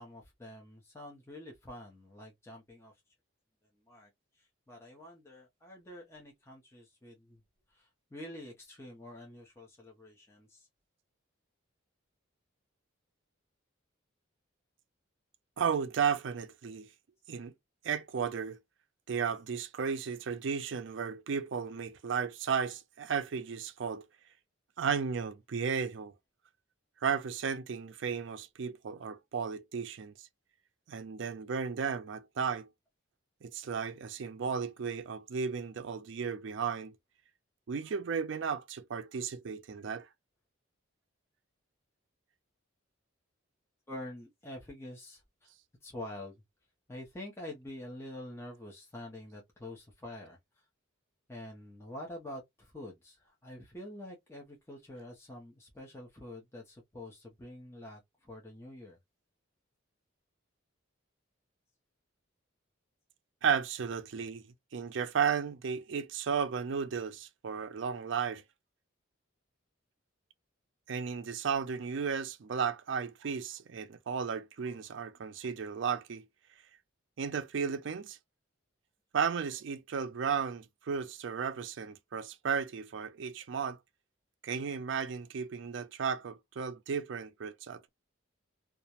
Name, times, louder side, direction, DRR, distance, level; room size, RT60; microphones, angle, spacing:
voice 1, 0.0-3.0 3.8-7.4 7.7-10.7 43.9-45.5 45.8-46.4 46.9-50.6 51.3-59.0, left 1 dB, 10° left, 0.5 m, -47 dB
voice 2, 15.6-16.9 17.3-17.5 17.8-18.6 19.1-24.0 24.8-26.1 27.0-30.1 30.9-32.7 33.4-36.9 37.7-40.1 63.4-64.4 64.7-68.4 70.9-76.2 77.2-78.2 79.1-83.8 84.4-87.9, right 6 dB, 60° right, 0.4 m, -34 dB
2.3 x 2.0 x 2.8 m
head